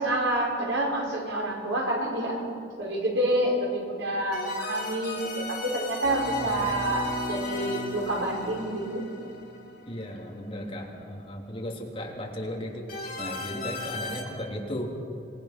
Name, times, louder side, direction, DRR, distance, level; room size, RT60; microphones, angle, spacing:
voice 1, 0.0-2.4 2.8-9.0, right 1 dB, 85° right, -2 dB, 5.6 m, -28 dB
sound 1, 4.3-10.2 12.9-14.2, left 2 dB, 50° left, 4.0 m, -36 dB
voice 2, 9.9-14.9, left 1 dB, 30° left, -1 dB, 3.3 m, -36 dB
26.0 x 20.0 x 6.0 m, 2.6 s
head